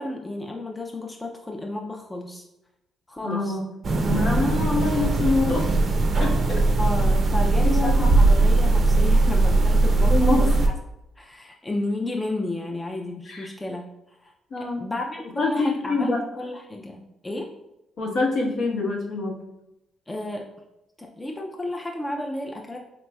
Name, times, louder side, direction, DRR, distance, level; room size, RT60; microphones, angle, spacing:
voice 1, 0.0-2.4 3.1-3.6 6.8-10.7 11.2-13.9 14.2-17.6 20.1-20.5 21.0-22.8, left 1 dB, 15° left, 1 dB, 0.4 m, -32 dB
voice 2, 3.2-3.7 4.1-5.6 6.2-6.6 7.6-8.0 9.9-10.5 13.3-13.5 14.5-14.9 15.4-16.2 18.0-19.4, left 3 dB, 65° left, -2 dB, 1.0 m, -25 dB
sound 1, 3.8-10.7, right 2 dB, 50° right, 0.5 m, -20 dB
4.0 x 2.9 x 2.3 m, 0.88 s
cardioid pair, 90°, 0 cm